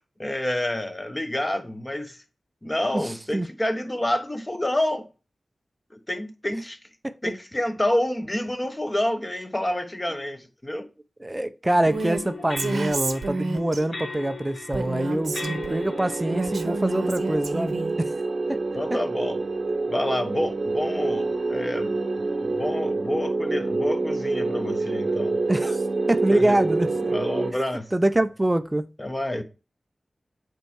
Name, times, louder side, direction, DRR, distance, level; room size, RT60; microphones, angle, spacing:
voice 1, 0.2-2.2 2.6-5.1 5.9-6.8 7.2-10.9 18.7-19.4 19.9-25.4 26.3-26.6 27.1-27.9 29.0-29.4, left 1 dB, 20° left, 1.2 m, -28 dB
voice 2, 2.9-3.5 7.0-7.1 11.2-18.1 18.5-18.6 25.5-25.8 26.1-27.1 27.5-27.6 27.9-28.9, right 1 dB, 15° right, 0.6 m, -25 dB
sound 1, 11.9-17.3, left 4 dB, 85° left, 2.3 m, -39 dB
Female speech woman speaking, 11.9-12.2 12.6-13.8 14.7-15.8 16.3-18.0, right 3 dB, 80° right, 1.0 m, -30 dB
sound 2, 14.8-27.5, right 3 dB, 60° right, 0.9 m, -27 dB
8.0 x 4.6 x 4.6 m
wide cardioid pair, 85°, 0 cm